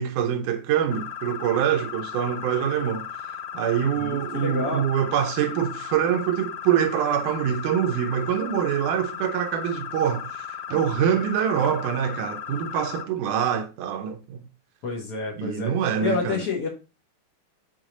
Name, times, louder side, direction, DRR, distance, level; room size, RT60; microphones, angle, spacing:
voice 1, 0.0-14.4 15.4-16.4, right 9 dB, 80° right, 2.1 m, -25 dB
sound 1, 0.9-13.0, left 9 dB, 80° left, 1.9 m, -36 dB
voice 2, 4.0-4.8 14.8-15.7 16.0-16.7, left 3 dB, 55° left, 2.1 m, -28 dB
6.5 x 4.0 x 3.7 m
omnidirectional pair, 3.7 m